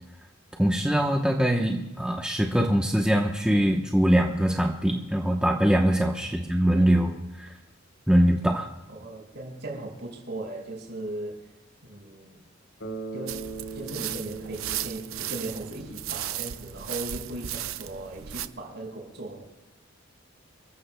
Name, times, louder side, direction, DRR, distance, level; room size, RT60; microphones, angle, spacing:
voice 1, 0.6-7.6 8.1-8.7, equal, 5° right, 1 dB, 0.9 m, -23 dB
voice 2, 8.9-11.4 11.8-12.4 13.1-13.4 13.7-19.4, right 1 dB, 55° right, 0 dB, 5.4 m, -38 dB
Bass guitar, 12.8-16.8, right 4 dB, 70° left, 3.4 m, -40 dB
sound 1, 13.3-18.5, right 12 dB, 80° right, 0.6 m, -35 dB
29.0 x 15.0 x 2.2 m, 1.1 s
head